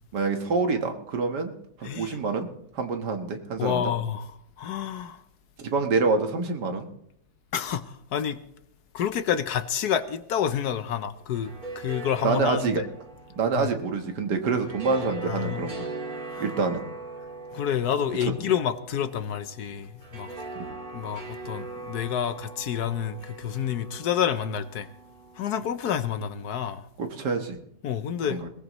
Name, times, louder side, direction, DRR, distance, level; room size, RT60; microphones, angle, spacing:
voice 1, 0.1-1.5 1.8-2.5 2.7-3.9 5.6-6.9 12.2-12.8 13.4-15.9 16.4-16.8 20.6-20.7 27.0-27.6 28.3-28.5, right 4 dB, 70° right, 2.0 m, -26 dB
voice 2, 1.8-2.2 3.6-4.3 4.6-5.2 7.5-8.4 8.9-12.9 13.6-13.7 15.2-15.7 16.3-16.5 17.5-20.3 20.9-24.9 25.4-26.9 27.8-28.4, left 9 dB, 70° left, 1.3 m, -29 dB
sound 1, 11.2-26.3, right 3 dB, 25° right, 2.5 m, -41 dB
21.0 x 18.0 x 3.1 m
omnidirectional pair, 1.9 m